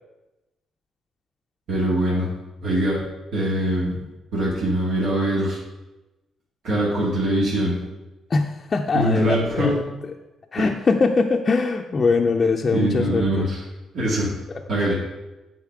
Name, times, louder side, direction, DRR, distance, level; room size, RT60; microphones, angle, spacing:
voice 1, 1.7-2.3 2.6-3.0 3.3-4.0 4.3-5.6 6.6-7.8 8.9-9.8 10.6-10.7 12.7-13.6 13.9-14.3 14.7-15.0, right 1 dB, 75° right, -7 dB, 2.3 m, -22 dB
voice 2, 8.3-9.7 10.5-13.5 14.5-14.6, left 4 dB, 35° left, 2 dB, 0.5 m, -22 dB
8.5 x 4.1 x 4.8 m, 1.0 s
cardioid pair, 90°, 0 cm